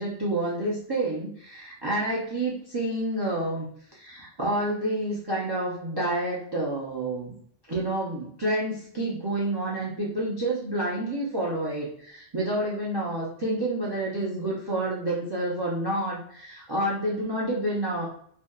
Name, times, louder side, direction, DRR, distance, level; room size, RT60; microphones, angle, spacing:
voice 1, 0.0-3.7 3.9-7.3 7.7-18.1, right 1 dB, 45° right, -5 dB, 0.3 m, -29 dB
2.6 x 2.2 x 2.2 m, 0.64 s
omnidirectional pair, 1.3 m